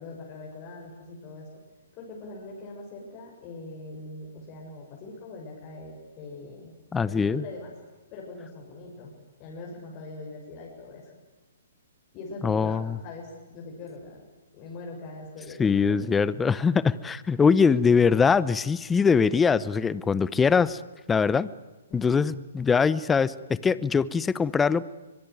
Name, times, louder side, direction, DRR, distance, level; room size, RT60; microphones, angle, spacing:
voice 1, 0.0-1.5 1.9-6.7 7.1-7.7 8.1-9.1 9.4-11.1 12.1-14.2 14.5-16.2 21.9-22.2, left 3 dB, 35° left, -2 dB, 7.0 m, -42 dB
voice 2, 6.9-7.4 12.4-13.0 15.6-20.8 21.1-21.5 21.9-24.8, left 5 dB, 10° left, 19 dB, 0.8 m, -22 dB
23.0 x 22.0 x 9.6 m, 1.1 s
hypercardioid pair, 135°, 0 cm